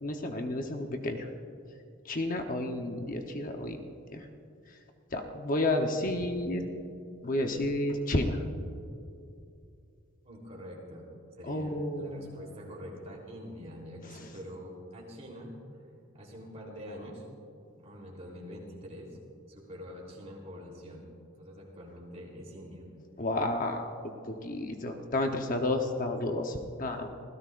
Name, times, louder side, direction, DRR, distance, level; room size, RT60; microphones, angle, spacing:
voice 1, 0.0-1.3 2.0-3.8 4.1-4.2 5.1-6.7 7.2-8.4 11.4-12.4 23.2-23.9 24.3-27.1, left 1 dB, 40° left, 4 dB, 0.9 m, -31 dB
voice 2, 10.2-15.5 16.1-17.2 17.8-19.1 19.5-21.0 21.4-22.8, equal, 30° right, -2 dB, 3.5 m, -45 dB
25.5 x 16.5 x 2.5 m, 2.5 s
head